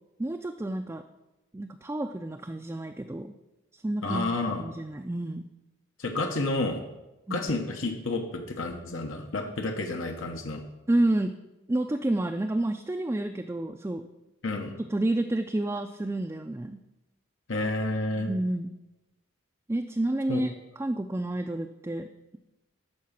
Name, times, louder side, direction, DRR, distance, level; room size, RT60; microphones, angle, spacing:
voice 1, 0.2-1.0 1.5-3.3 3.7-5.5 7.3-7.5 10.9-11.3 11.7-14.0 14.9-16.8 18.2-18.7 19.7-22.1, right 1 dB, 15° right, 5 dB, 0.3 m, -29 dB
voice 2, 4.0-4.6 6.0-6.8 7.3-10.6 14.4-14.7 17.5-18.3 20.3-20.4, left 2 dB, 90° left, 3 dB, 1.1 m, -30 dB
12.0 x 4.9 x 5.9 m, 0.99 s
head